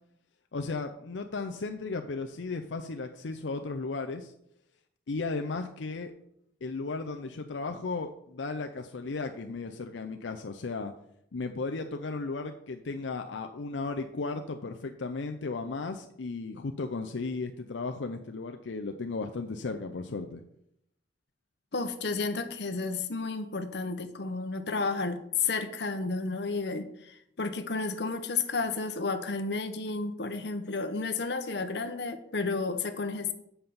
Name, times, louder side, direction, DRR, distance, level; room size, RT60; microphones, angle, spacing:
voice 1, 0.5-4.3 5.1-6.1 6.6-10.9 11.3-20.4, left 3 dB, 85° left, 5 dB, 0.6 m, -35 dB
voice 2, 21.7-33.3, left 4 dB, 65° left, 8 dB, 0.9 m, -32 dB
7.7 x 5.6 x 6.9 m, 0.76 s
head